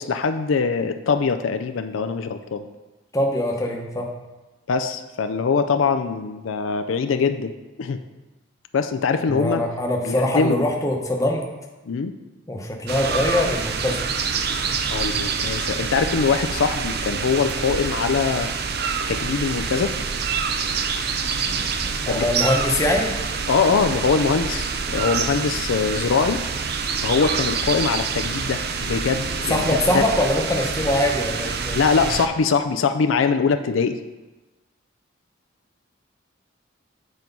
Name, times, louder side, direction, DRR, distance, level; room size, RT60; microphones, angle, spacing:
voice 1, 0.0-2.6 4.7-7.5 7.8-8.0 8.7-9.6 10.0-10.7 11.9-12.1 14.9-18.5 19.1-19.9 22.1-22.2 23.5-26.4 27.0-30.0 31.7-34.0, left 5 dB, 80° left, 8 dB, 0.4 m, -22 dB
voice 2, 3.1-4.1 9.3-11.4 12.5-14.0 22.0-23.1 29.5-31.8, left 1 dB, 15° left, 1 dB, 0.9 m, -23 dB
sound 1, 12.9-32.3, right 5 dB, 55° right, 0.5 m, -26 dB
sound 2, 21.3-24.0 24.8-24.9 25.2-30.1, equal, 35° right, 1.2 m, -45 dB
8.0 x 4.5 x 5.3 m, 1.1 s
head